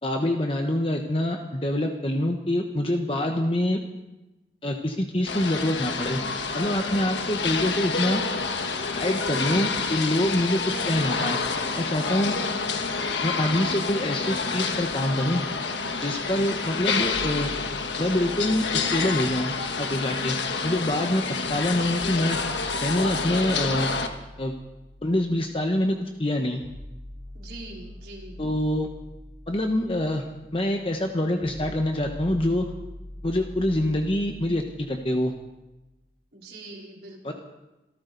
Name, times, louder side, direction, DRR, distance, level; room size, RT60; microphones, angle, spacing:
voice 1, 0.0-3.8 4.6-6.2 6.5-8.2 8.9-10.6 10.9-11.4 11.8-12.3 13.2-15.4 16.0-17.5 18.0-19.5 19.8-20.4 20.6-22.4 22.8-23.9 24.4-24.5 25.0-26.6 28.4-28.9 29.5-30.2 30.5-32.6 33.2-35.3 37.2-37.3, left 1 dB, 30° left, 3 dB, 1.1 m, -25 dB
sound 1, 5.3-24.1, left 4 dB, 90° left, 1.5 m, -28 dB
sound 2, 17.0-21.0 21.8-35.8, left 1 dB, ahead, 3.3 m, -44 dB
voice 2, 27.3-28.4 36.3-37.3, right 2 dB, 65° right, -2 dB, 4.2 m, -43 dB
26.5 x 13.5 x 4.0 m, 1.0 s
head